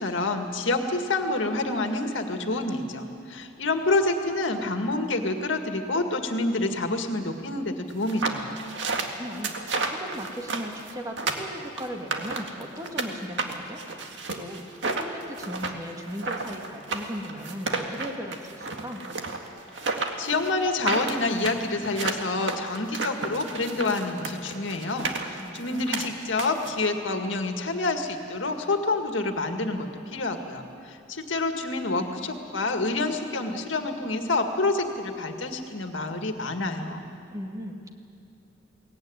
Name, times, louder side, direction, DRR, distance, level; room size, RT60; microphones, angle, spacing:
voice 1, 0.0-8.6 20.2-37.0, left 2 dB, 75° left, 5 dB, 1.9 m, -28 dB
sound 1, 8.0-13.1 13.4-26.7, right 3 dB, 65° right, 2.0 m, -32 dB
voice 2, 8.9-13.8 14.1-19.0 25.4-26.1 37.3-37.9, equal, 20° right, 2 dB, 1.9 m, -37 dB
22.0 x 18.5 x 9.7 m, 2.5 s
head